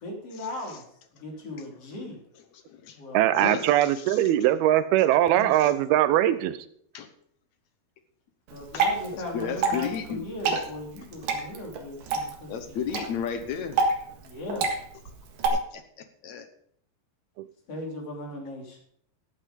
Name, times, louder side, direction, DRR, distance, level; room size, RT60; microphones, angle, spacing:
voice 1, 0.0-0.8 1.2-2.2 2.9-3.3 5.3-5.7 8.5-12.8 14.2-14.7 17.7-18.8, left 1 dB, 40° left, 0 dB, 4.0 m, -38 dB
voice 2, 2.5-3.0 3.4-4.3 5.5-5.7 6.9-7.1 8.7-8.9 9.1-10.2 12.5-13.8 15.5-15.8 16.2-16.5, left 7 dB, 70° left, 9 dB, 1.8 m, -33 dB
voice 3, 3.1-6.5 17.4-17.5, right 13 dB, 90° right, 14 dB, 2.7 m, -21 dB
Water / Drip, 8.5-15.5, right 4 dB, 65° right, 3.2 m, -29 dB
14.0 x 8.6 x 5.2 m, 0.66 s
omnidirectional pair, 4.3 m